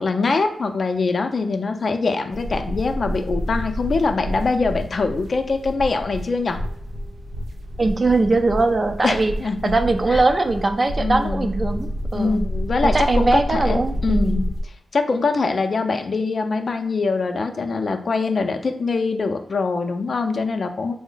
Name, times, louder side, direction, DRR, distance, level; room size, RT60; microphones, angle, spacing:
voice 1, 0.0-6.6 9.0-9.7 10.1-10.2 11.0-11.5 12.1-14.4 14.9-21.0, left 4 dB, 60° left, 6 dB, 0.5 m, -23 dB
sound 1, 2.3-14.6, equal, 85° right, 0.7 m, -28 dB
voice 2, 7.8-9.3 9.6-12.4 12.8-14.4, right 3 dB, 40° right, 6 dB, 0.5 m, -21 dB
3.2 x 2.0 x 3.8 m, 0.71 s
cardioid pair, 50°, 0 cm